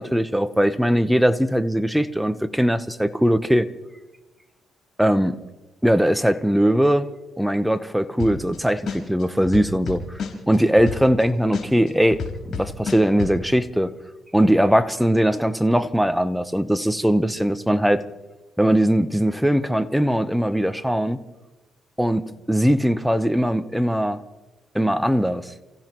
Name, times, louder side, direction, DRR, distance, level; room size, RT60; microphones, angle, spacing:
voice 1, 0.0-3.7 5.0-5.4 5.8-7.1 7.4-10.0 10.5-12.2 12.6-13.9 14.3-18.0 18.6-21.2 22.0-24.2 24.7-25.5, equal, ahead, 11 dB, 0.9 m, -20 dB
sound 1, 8.2-8.6 8.9-11.2 11.5-13.3, left 6 dB, 60° left, 4.4 m, -29 dB
30.0 x 15.5 x 3.1 m, 1.0 s
cardioid pair, 90°, 0 cm